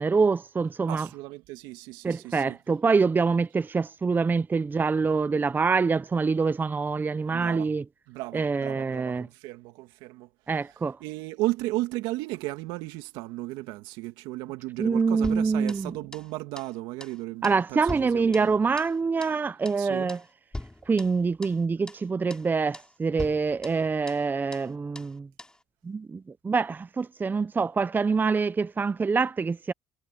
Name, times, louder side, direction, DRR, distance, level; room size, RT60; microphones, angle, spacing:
voice 1, 0.0-1.1 2.0-7.8 8.3-9.3 10.5-11.0 14.8-16.0 17.4-20.2 20.9-25.3 25.8-29.7, right 4 dB, 25° right, 0.6 m, -25 dB
voice 2, 0.9-2.6 7.3-7.7 8.1-10.3 11.0-18.5 19.8-20.1, right 19 dB, 80° right, 2.2 m, -35 dB
sound 1, 15.2-16.3 16.6-16.7 17.0-17.2 17.4-19.0 19.2-19.4 19.6-19.8 20.1-20.3 20.5-21.6 21.9-22.0 22.3-22.5 22.7-22.9 23.2-24.3 24.5-24.7 24.9-25.1 25.4-25.6, left 1 dB, 10° left, 6.0 m, -42 dB
supercardioid pair, 75°, 8 cm